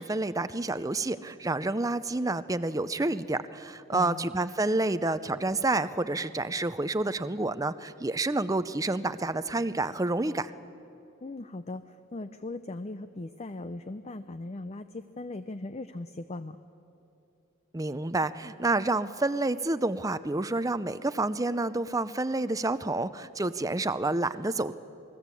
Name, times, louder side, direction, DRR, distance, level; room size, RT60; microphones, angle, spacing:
voice 1, 0.0-10.5 17.7-24.7, right 2 dB, 15° right, 13 dB, 0.6 m, -29 dB
voice 2, 3.9-4.3 11.2-16.6, left 2 dB, 30° left, 11 dB, 0.6 m, -39 dB
28.0 x 20.0 x 8.4 m, 2.9 s
head